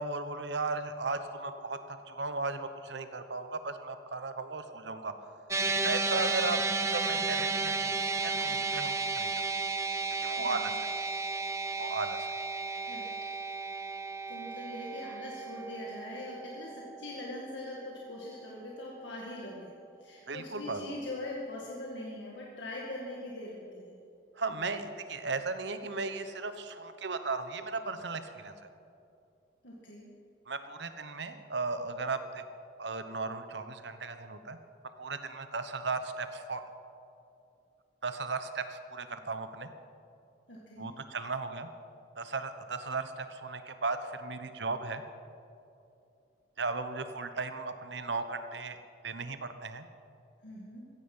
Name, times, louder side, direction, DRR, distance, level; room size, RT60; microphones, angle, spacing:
voice 1, 0.0-5.1 5.8-6.6 6.9-9.3 10.2-10.7 11.8-12.3 20.3-21.0 24.4-28.5 30.5-32.4 32.8-34.6 35.0-36.6 38.0-39.7 40.8-41.7 42.2-45.0 46.6-48.8 49.0-49.8, right 3 dB, 70° right, 10 dB, 1.1 m, -36 dB
sound 1, 5.5-17.9, right 3 dB, 15° right, 0.7 m, -33 dB
voice 2, 14.3-19.7 20.0-24.0 29.6-30.1 40.5-40.9 50.4-50.8, left 1 dB, 80° left, -3 dB, 2.1 m, -42 dB
15.5 x 15.5 x 5.6 m, 2.7 s
head